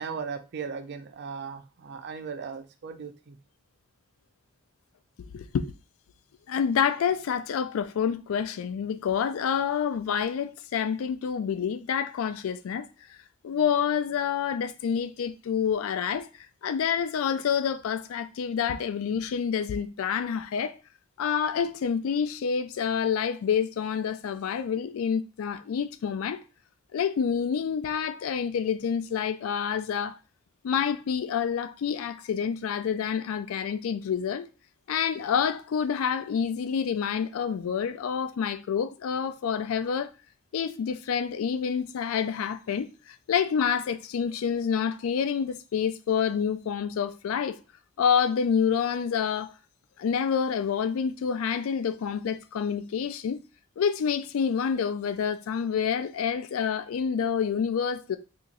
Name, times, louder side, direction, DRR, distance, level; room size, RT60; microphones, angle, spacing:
voice 1, 0.0-3.4, right 6 dB, 55° right, 0.4 m, -37 dB
voice 2, 5.2-5.7 6.5-12.9 13.4-16.3 16.6-20.8 21.2-26.4 26.9-30.1 30.6-34.5 34.9-40.1 40.5-47.6 48.0-49.5 50.0-53.4 53.8-58.2, left 7 dB, 80° left, 0.3 m, -28 dB
3.9 x 2.8 x 2.5 m
head